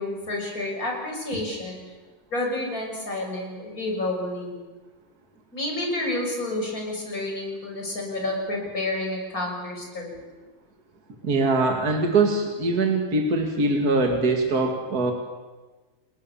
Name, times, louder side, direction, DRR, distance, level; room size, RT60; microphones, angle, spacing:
voice 1, 0.0-1.8 2.3-4.6 5.5-10.2, left 2 dB, 40° left, 0 dB, 7.1 m, -29 dB
voice 2, 11.2-15.1, right 3 dB, 45° right, 3 dB, 2.9 m, -22 dB
30.0 x 20.5 x 7.2 m, 1.2 s
omnidirectional pair, 2.2 m